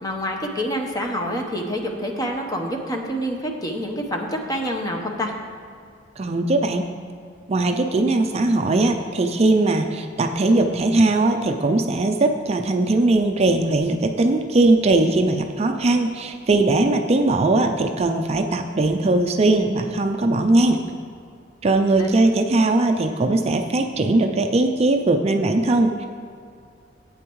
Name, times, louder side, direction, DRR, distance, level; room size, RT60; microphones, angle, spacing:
voice 1, 0.0-5.3 22.0-22.1, equal, 20° left, 2 dB, 1.0 m, -27 dB
voice 2, 6.2-6.8 7.5-20.8 21.6-26.1, right 2 dB, 35° right, 5 dB, 0.4 m, -20 dB
13.0 x 8.6 x 3.1 m, 2.3 s
head